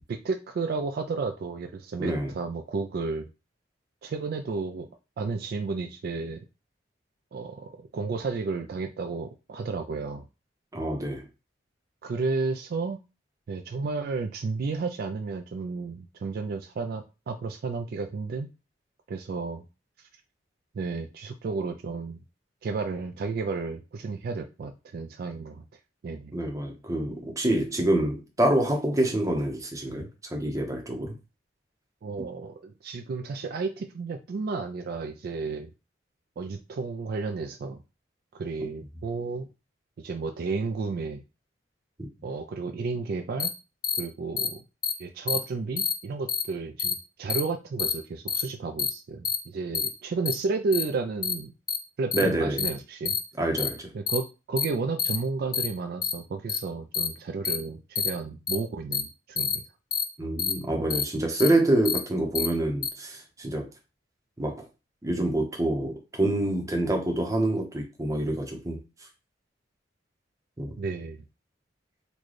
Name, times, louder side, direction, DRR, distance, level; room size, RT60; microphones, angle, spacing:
voice 1, 0.1-3.3 4.0-4.9 5.2-6.4 7.3-10.2 12.0-13.0 13.5-18.5 19.1-19.7 20.0-20.1 20.7-22.2 22.6-25.6 26.0-26.3 32.0-35.7 36.4-37.8 38.3-39.5 40.0-41.2 42.2-43.5 44.0-44.6 45.0-51.5 52.0-53.2 53.9-59.6 60.7-60.8 70.8-71.2, right 4 dB, 55° right, 0.3 m, -32 dB
voice 2, 2.0-2.3 10.7-11.2 26.3-31.1 38.6-38.7 52.1-52.6 53.4-53.8 60.2-63.7 64.4-64.6 65.0-68.8 70.6-70.7, right 1 dB, 20° right, 0.7 m, -26 dB
sound 1, 43.4-43.5 43.8-44.0 44.4-44.5 44.8-44.9 45.3-45.4 45.8-45.9 46.3-46.4 46.8-46.9 47.3-47.4 47.8-47.9 48.3-48.4 48.8-48.9 49.2-49.4 49.7-49.9 50.2-50.3 50.7-50.8 51.2-51.3 51.7-51.8 52.1-52.2 52.6-52.7 53.0-53.2 53.6-53.7 54.1-54.2 54.6-54.7 55.0-55.2 55.5-55.7 56.0-56.1 56.5-56.6 56.9-57.1 57.4-57.6 57.9-58.1 58.5-58.6 58.9-59.0 59.4-59.5 59.9-60.0 60.4-60.5 60.9-61.0 61.4-61.5 61.8-62.0 62.3-62.5 62.8-62.9, left 7 dB, 20° left, 0.4 m, -27 dB
3.9 x 2.2 x 3.1 m
head